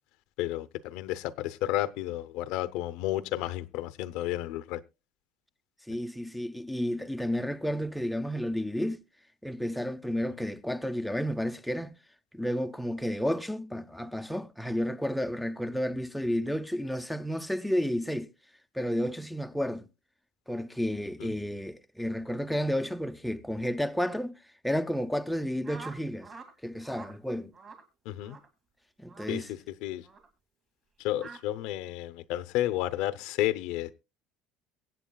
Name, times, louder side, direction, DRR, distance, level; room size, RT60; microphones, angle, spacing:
voice 1, 0.4-4.8 21.2-21.3 28.0-28.4 29.3-30.1 31.0-33.9, left 15 dB, 75° left, 0.7 m, -32 dB
voice 2, 5.9-9.0 9.4-12.0 12.3-18.3 18.7-19.9 20.5-24.3 24.6-26.3 26.6-27.5 29.0-29.5, equal, ahead, 0.5 m, -31 dB
sound 1, 25.6-26.5 26.8-27.1 27.5-27.8 28.2-28.5 29.1-29.3 30.0-30.3 31.2-31.4, right 4 dB, 35° right, 2.2 m, -46 dB
23.0 x 8.1 x 2.3 m
cardioid pair, 140°, 0 cm